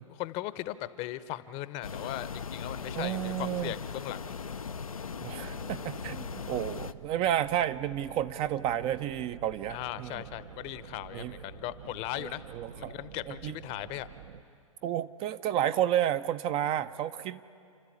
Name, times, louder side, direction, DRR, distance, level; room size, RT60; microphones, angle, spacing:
voice 1, 0.0-4.4 9.7-12.4 12.8-14.1, left 15 dB, 35° left, 15 dB, 0.8 m, -38 dB
sound 1, 1.8-6.9, left 5 dB, 90° left, 0.6 m, -39 dB
voice 2, 3.0-3.7 5.2-10.2 11.1-11.3 12.2-13.0 13.3-13.5 14.8-17.4, right 11 dB, 30° right, 12 dB, 0.5 m, -31 dB
sound 2, 5.4-14.4, right 8 dB, 60° right, 0.9 m, -48 dB
29.5 x 13.0 x 8.6 m, 2.5 s
hypercardioid pair, 110°, 17 cm